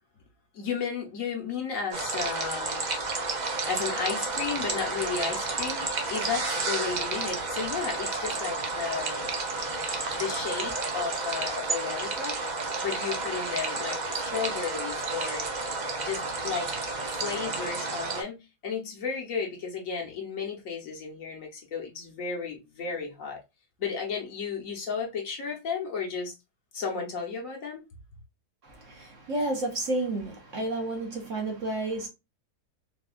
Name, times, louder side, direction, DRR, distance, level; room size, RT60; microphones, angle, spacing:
voice 1, 0.5-2.8 3.6-9.3 10.2-12.4 12.8-15.5 16.0-16.7 17.1-23.4 23.8-26.3 26.7-27.8, left 6 dB, 60° left, 1.1 m, -33 dB
sound 1, 1.9-18.2, right 3 dB, 80° right, 0.4 m, -31 dB
voice 2, 9.7-10.2 28.6-32.1, right 2 dB, 55° right, 1.1 m, -31 dB
4.2 x 2.3 x 2.2 m
omnidirectional pair, 1.7 m